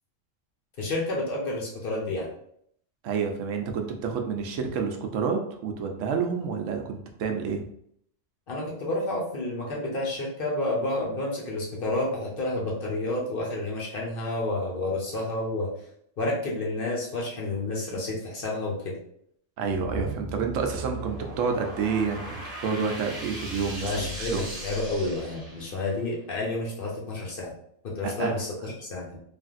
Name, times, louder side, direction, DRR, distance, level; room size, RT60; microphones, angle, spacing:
voice 1, 0.8-2.3 8.5-15.7 16.2-19.0 23.8-27.5 28.0-29.2, left 2 dB, 50° left, -4 dB, 0.9 m, -30 dB
voice 2, 3.0-7.6 19.6-24.4 28.0-28.4 28.6-28.7, right 5 dB, 80° right, 4 dB, 0.9 m, -29 dB
sound 1, 19.7-26.0, right 1 dB, 30° right, 1.0 m, -37 dB
3.3 x 2.5 x 2.4 m, 0.68 s
omnidirectional pair, 1.3 m